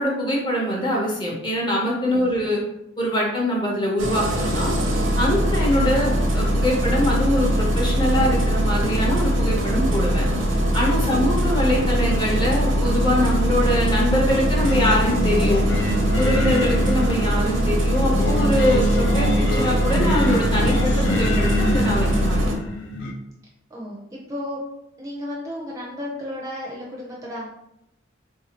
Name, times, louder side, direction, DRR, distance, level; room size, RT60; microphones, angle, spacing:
voice 1, 0.0-2.6 3.0-4.7 5.2-10.3 10.7-15.6 16.1-22.4, equal, 25° left, -3 dB, 0.8 m, -23 dB
Engine starting, 4.0-22.5, equal, 80° right, 0.7 m, -21 dB
Singing, 14.6-23.1, left 1 dB, 65° left, 0.5 m, -26 dB
voice 2, 23.7-24.6 25.0-27.5, left 1 dB, 15° right, -4 dB, 0.6 m, -34 dB
3.6 x 2.7 x 2.9 m, 0.83 s
head